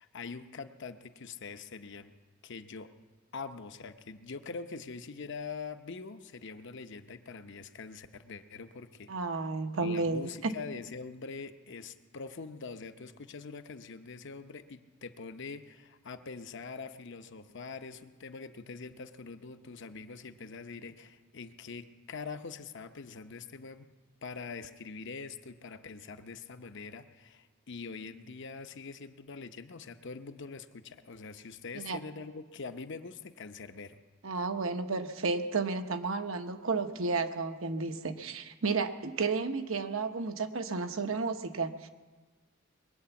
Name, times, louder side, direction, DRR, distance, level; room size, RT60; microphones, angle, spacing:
voice 1, 0.0-2.1 2.4-2.9 3.3-9.1 9.8-23.8 24.2-34.0, left 4 dB, 60° left, 9 dB, 0.8 m, -44 dB
voice 2, 9.1-10.5 31.7-32.0 34.2-41.9, right 4 dB, 80° right, 7 dB, 1.0 m, -32 dB
21.5 x 9.2 x 7.1 m, 1.3 s
head